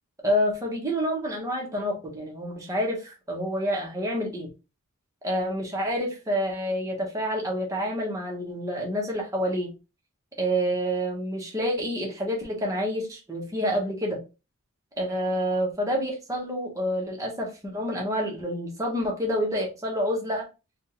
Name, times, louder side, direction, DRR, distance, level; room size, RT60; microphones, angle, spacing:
voice 1, 0.2-4.5 5.2-9.7 10.4-14.2 15.0-20.5, equal, 15° right, 1.0 m, -28 dB
3.5 x 2.5 x 2.9 m
head